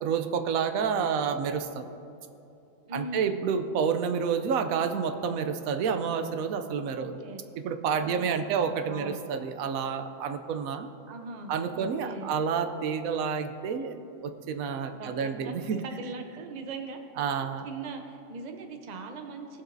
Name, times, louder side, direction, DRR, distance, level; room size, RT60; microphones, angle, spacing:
voice 1, 0.0-1.9 2.9-7.3 7.6-10.9 11.5-13.9 14.2-15.8 17.2-17.7, right 6 dB, 80° right, 8 dB, 1.0 m, -29 dB
voice 2, 2.9-3.5 7.0-7.4 8.0-9.2 11.1-12.3 14.9-17.0 17.3-19.6, right 3 dB, 40° right, 5 dB, 0.7 m, -41 dB
18.5 x 7.4 x 2.6 m, 2.8 s
omnidirectional pair, 1.4 m